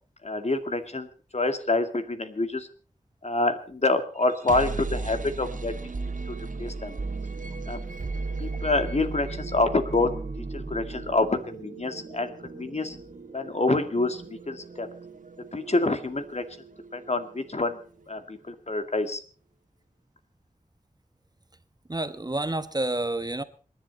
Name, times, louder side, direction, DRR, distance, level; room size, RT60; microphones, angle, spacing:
voice 1, 0.2-1.1 1.3-2.7 3.2-5.9 6.3-7.0 7.7-7.8 8.4-10.1 10.4-13.0 13.3-14.9 15.5-16.4 16.9-17.8 18.1-19.2, left 2 dB, 55° left, 8 dB, 2.1 m, -27 dB
sound 1, 4.2-18.0, right 3 dB, 75° right, 1.8 m, -36 dB
voice 2, 21.9-23.4, right 2 dB, 30° right, 12 dB, 1.1 m, -29 dB
27.5 x 10.5 x 4.1 m, 0.39 s
wide cardioid pair, 70°, 14 cm